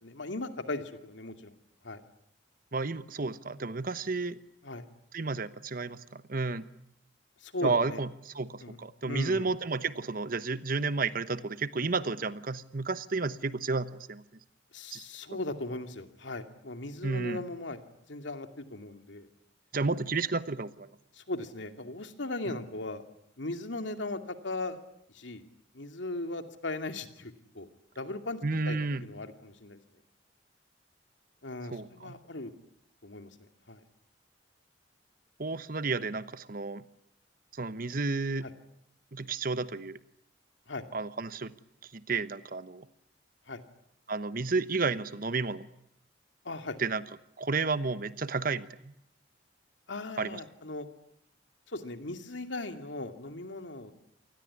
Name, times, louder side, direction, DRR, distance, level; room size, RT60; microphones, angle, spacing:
voice 1, 0.0-1.5 1.8-2.0 4.6-4.8 7.4-8.0 8.6-9.5 14.7-17.8 18.1-19.3 21.1-23.0 23.4-24.8 25.1-25.4 25.7-27.7 28.0-28.4 28.6-29.8 31.4-32.5 33.0-33.3 33.7-33.8 38.4-38.5 40.7-40.8 43.5-43.6 46.4-46.8 49.9-50.9 51.7-53.9, left 2 dB, 90° left, 7 dB, 2.5 m, -38 dB
voice 2, 2.7-4.4 5.1-6.7 7.6-14.2 14.9-15.0 17.0-17.4 19.7-20.9 22.5-22.6 28.4-29.0 31.7-32.1 35.4-36.8 37.6-38.5 39.1-40.0 40.9-41.5 41.9-42.8 44.1-45.7 46.8-47.0 47.4-48.7 50.2-50.4, right 3 dB, 50° right, 14 dB, 1.1 m, -31 dB
27.5 x 20.0 x 9.7 m, 0.74 s
head